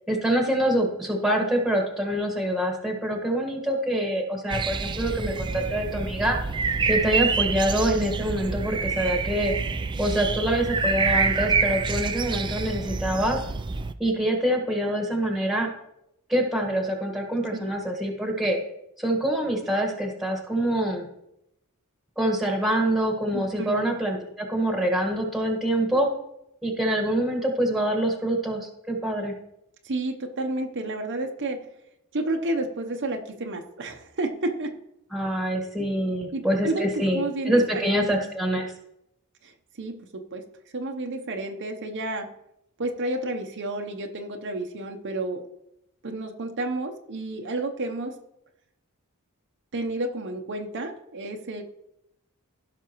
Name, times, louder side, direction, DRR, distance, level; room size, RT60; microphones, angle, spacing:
voice 1, 0.1-6.4 6.9-9.5 10.0-13.4 14.0-15.7 16.3-18.6 19.0-21.0 22.2-26.1 26.6-29.3 35.1-38.7, right 1 dB, ahead, 2 dB, 1.5 m, -25 dB
sound 1, 4.5-13.9, right 4 dB, 20° right, 0.4 m, -27 dB
voice 2, 23.3-23.8 29.8-31.7 32.1-34.8 36.3-37.9 39.4-40.4 40.7-42.3 42.8-45.4 46.0-48.2 49.7-51.6, right 2 dB, 55° right, 3 dB, 0.8 m, -31 dB
15.5 x 5.9 x 3.0 m, 0.83 s
head